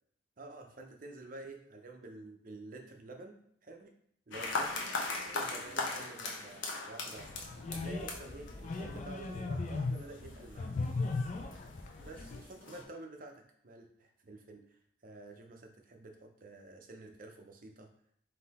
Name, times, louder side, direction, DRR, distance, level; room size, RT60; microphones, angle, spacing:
voice 1, 0.4-3.9 4.3-4.9 5.3-10.8 12.0-17.9, right 2 dB, 45° right, 3 dB, 0.6 m, -49 dB
sound 1, 4.3-12.8, left 3 dB, 75° left, 0.8 m, -40 dB
sound 2, 7.2-12.4, left 3 dB, 40° left, 0.3 m, -38 dB
3.7 x 2.7 x 4.1 m, 0.69 s
head